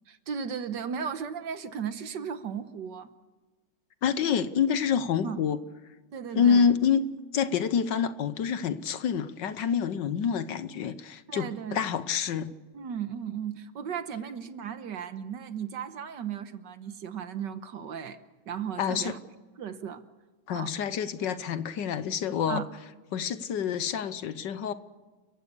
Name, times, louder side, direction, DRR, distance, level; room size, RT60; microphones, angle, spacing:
voice 1, 0.1-3.1 5.2-5.4 6.1-6.7 11.3-11.8 12.7-18.2 18.5-19.2 19.6-20.0 20.5-20.7 22.5-22.6, right 7 dB, 65° right, 11 dB, 1.6 m, -35 dB
voice 2, 4.0-5.6 6.3-12.5 18.8-19.1 20.5-22.6 23.1-24.7, left 7 dB, 65° left, 13 dB, 1.5 m, -27 dB
30.0 x 16.0 x 6.9 m, 1.3 s
omnidirectional pair, 2.2 m